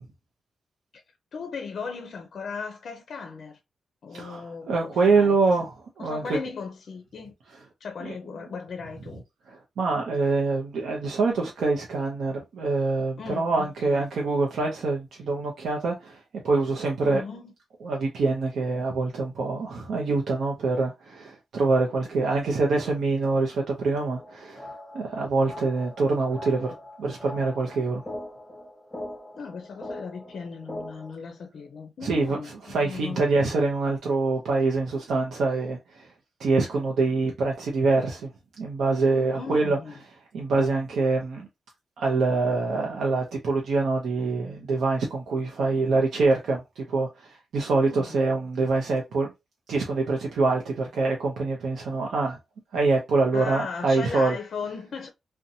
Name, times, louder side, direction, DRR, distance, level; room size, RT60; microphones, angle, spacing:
voice 1, 1.3-3.6 4.0-5.7 6.0-7.3 7.8-9.2 13.2-14.0 17.0-17.5 29.4-33.2 39.3-40.0 47.8-48.2 53.3-55.1, left 5 dB, 60° left, 0.4 m, -37 dB
voice 2, 4.1-6.4 8.0-8.2 9.5-17.2 17.8-24.7 24.9-26.7 27.0-28.0 32.0-36.1 36.4-38.3 38.6-39.8 40.3-41.5 42.0-49.3 49.7-52.4 52.7-54.4, right 3 dB, 85° right, 0.6 m, -25 dB
sound 1, 24.1-31.1, left 1 dB, 10° left, 0.5 m, -41 dB
2.7 x 2.1 x 2.6 m
wide cardioid pair, 145°, 0 cm